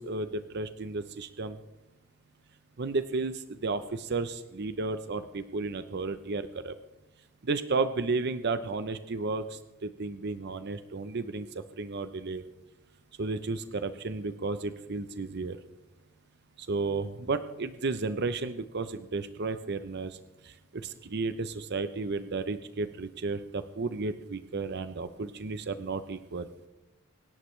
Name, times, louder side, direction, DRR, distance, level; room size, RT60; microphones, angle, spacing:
voice 1, 0.0-1.6 2.8-6.8 7.4-12.4 13.2-15.6 16.6-20.2 20.4-26.5, right 3 dB, 50° right, 11 dB, 0.6 m, -33 dB
24.5 x 11.0 x 3.2 m, 0.96 s
head